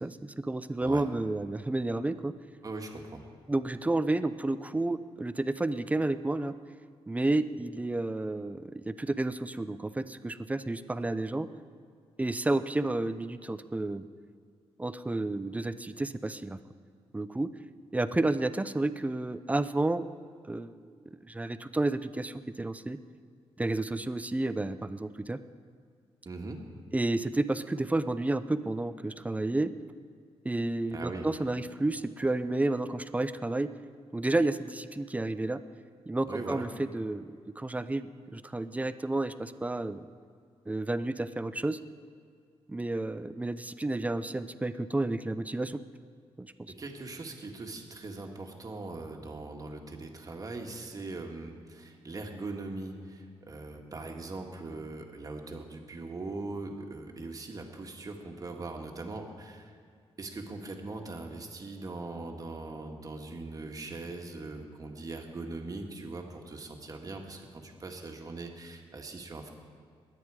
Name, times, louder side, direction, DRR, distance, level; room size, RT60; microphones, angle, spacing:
voice 1, 0.0-2.3 3.5-6.5 7.1-11.5 12.2-14.1 14.8-16.6 17.1-17.5 17.9-20.1 20.4-20.9 21.2-23.0 23.6-25.4 26.9-29.7 30.4-33.7 34.1-35.6 36.1-40.0 40.7-41.8 42.7-45.8 46.4-46.7, right 2 dB, 15° right, 13 dB, 0.5 m, -31 dB
voice 2, 2.6-3.3 26.3-26.6 30.9-31.3 36.3-36.7 46.8-59.7 60.2-69.5, right 3 dB, 35° right, 2 dB, 1.8 m, -40 dB
21.5 x 9.5 x 4.9 m, 2.2 s
cardioid pair, 105°, 10 cm